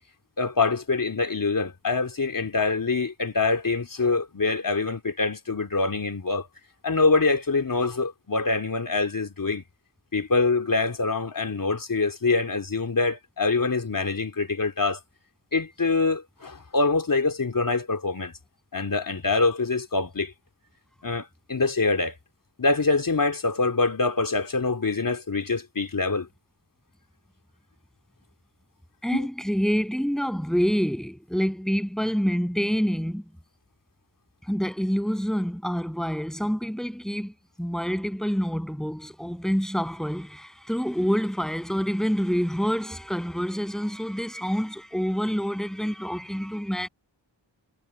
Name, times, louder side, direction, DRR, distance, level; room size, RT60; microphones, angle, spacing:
voice 1, 0.4-6.5 6.8-9.6 10.1-15.0 15.5-18.3 18.7-20.3 21.0-22.2 22.6-26.3 29.1-29.3, left 3 dB, 45° left, 3.0 m, -25 dB
voice 2, 29.0-33.2 34.5-37.3 37.6-46.9, equal, ahead, 7.8 m, -27 dB
cardioid pair, 50°, 45 cm